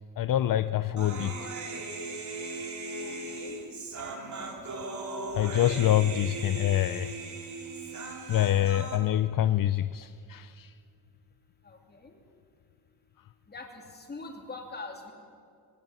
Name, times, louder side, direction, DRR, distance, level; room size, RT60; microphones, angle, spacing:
voice 1, 0.2-1.3 5.3-7.1 8.3-10.7, left 12 dB, 60° left, 13 dB, 0.6 m, -26 dB
Human voice, 1.0-9.0, right 3 dB, 50° right, 3.2 m, -38 dB
voice 2, 3.0-3.6 11.6-12.2 13.5-15.1, left 3 dB, 25° left, 2 dB, 3.2 m, -43 dB
21.5 x 18.0 x 9.3 m, 2.3 s
wide cardioid pair, 175°, 38 cm